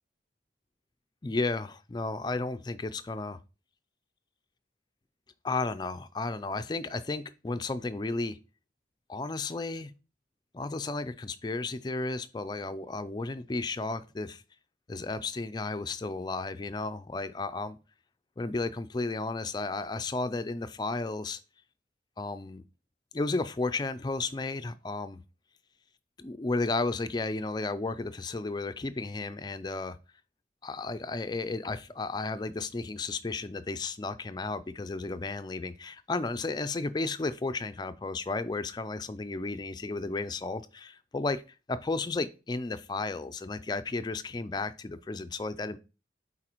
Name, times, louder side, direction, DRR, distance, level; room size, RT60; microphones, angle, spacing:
voice 1, 1.2-3.4 5.4-8.4 9.1-9.9 10.5-14.4 14.9-17.8 18.4-21.4 22.2-22.6 23.1-25.2 26.2-30.0 30.6-41.4 41.7-45.8, left 3 dB, 25° left, 0.4 m, -33 dB
8.8 x 4.2 x 3.0 m
head